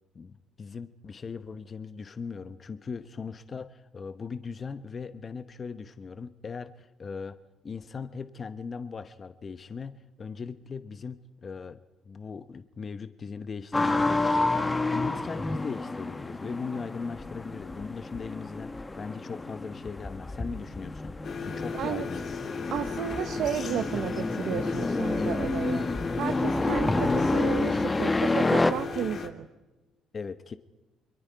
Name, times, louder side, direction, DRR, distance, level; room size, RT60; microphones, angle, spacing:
voice 1, 0.1-7.4 7.6-11.8 12.0-21.1 21.4-22.2 30.1-30.6, left 5 dB, 40° left, 11 dB, 0.9 m, -39 dB
sound 1, 13.7-28.7, left 2 dB, 20° left, 1.3 m, -29 dB
sound 2, 21.2-29.3, left 5 dB, 55° left, 2.6 m, -36 dB
voice 2, 21.7-22.1 22.7-29.5, right 10 dB, 75° right, 7 dB, 0.9 m, -33 dB
28.0 x 22.5 x 4.7 m, 1.1 s
supercardioid pair, 75°, 0 cm